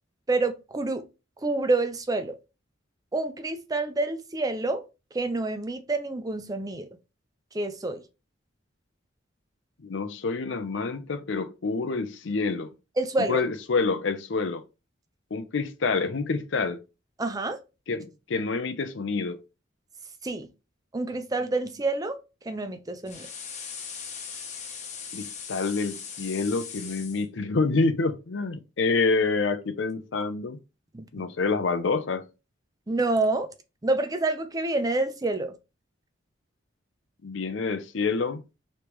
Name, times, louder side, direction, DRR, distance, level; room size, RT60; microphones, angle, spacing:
voice 1, 0.3-1.0 1.4-2.4 3.1-4.8 5.1-6.9 7.5-8.0 13.0-13.4 17.2-17.6 20.2-20.5 20.9-22.2 22.5-23.3 30.9-31.0 32.9-33.5 33.8-35.5, right 2 dB, 20° right, 0.5 m, -27 dB
voice 2, 9.8-12.7 13.3-14.6 15.3-16.8 17.9-19.4 25.1-30.6 31.1-32.3 37.2-38.4, left 4 dB, 75° left, 0.6 m, -27 dB
sound 1, 23.1-27.2, left 6 dB, 35° left, 0.9 m, -39 dB
5.0 x 3.2 x 3.0 m
head